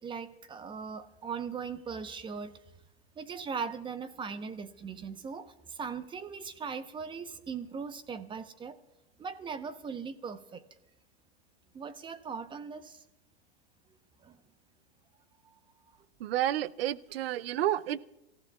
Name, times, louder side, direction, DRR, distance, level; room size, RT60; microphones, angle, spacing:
voice 1, 0.0-2.6 3.2-8.8 9.2-10.6 11.7-13.0 14.2-14.4 15.4-15.5, right 6 dB, 15° right, 11 dB, 0.8 m, -39 dB
voice 2, 16.2-18.0, right 13 dB, 70° right, 20 dB, 0.6 m, -30 dB
28.0 x 15.5 x 2.4 m, 0.93 s
hypercardioid pair, 120°, 31 cm